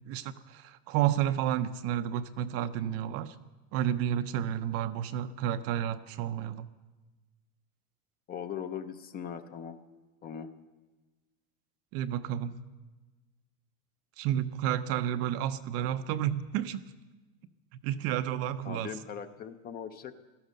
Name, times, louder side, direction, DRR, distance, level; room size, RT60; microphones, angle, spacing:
voice 1, 0.1-3.3 3.7-6.7 11.9-12.5 14.2-16.8 17.8-18.9, right 11 dB, 35° right, 11 dB, 0.6 m, -31 dB
voice 2, 8.3-9.8 10.2-10.5 18.6-20.2, left 8 dB, 25° left, 10 dB, 0.6 m, -40 dB
16.5 x 13.0 x 6.5 m, 1.2 s
supercardioid pair, 150°, 41 cm